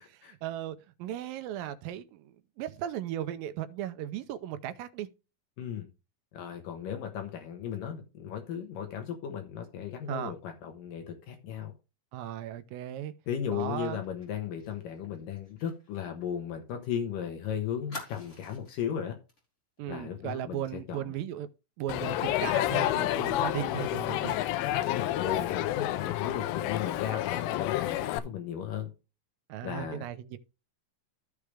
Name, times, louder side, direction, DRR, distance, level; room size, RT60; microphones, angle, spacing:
voice 1, 0.1-5.1 10.1-10.3 12.1-13.1 13.5-14.0 19.8-21.5 21.8-24.4 29.5-30.4, right 12 dB, 80° right, 2.5 m, -37 dB
voice 2, 6.3-11.7 13.3-19.2 19.9-21.1 24.7-28.9 29.6-30.1, left 8 dB, 75° left, 2.8 m, -36 dB
Fire, 13.6-17.0 17.3-17.4 17.9-18.9 19.3-19.5 19.8-20.0, left 2 dB, 20° left, 3.5 m, -48 dB
Crowd, 21.9-28.2, left 14 dB, 90° left, 2.5 m, -29 dB
14.0 x 5.0 x 3.3 m
omnidirectional pair, 4.1 m